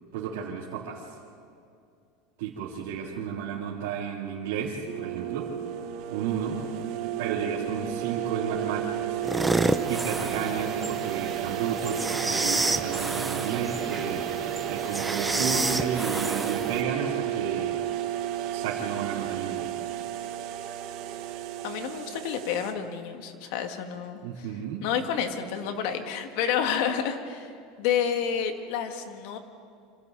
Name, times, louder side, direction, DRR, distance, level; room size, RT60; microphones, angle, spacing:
voice 1, 0.1-1.1 2.4-5.5 6.1-6.6 7.2-9.1 9.9-14.2 14.7-17.8 18.5-19.6 24.2-24.8, right 7 dB, 70° right, -6 dB, 3.2 m, -32 dB
sound 1, 4.9-22.7, right 12 dB, 45° right, 1.5 m, -32 dB
sound 2, 9.2-16.8, right 2 dB, 5° right, 0.6 m, -30 dB
voice 2, 21.6-24.5 24.8-27.5 27.8-29.4, left 8 dB, 55° left, 6 dB, 1.9 m, -29 dB
27.0 x 27.0 x 4.1 m, 2.4 s
supercardioid pair, 175°, 0 cm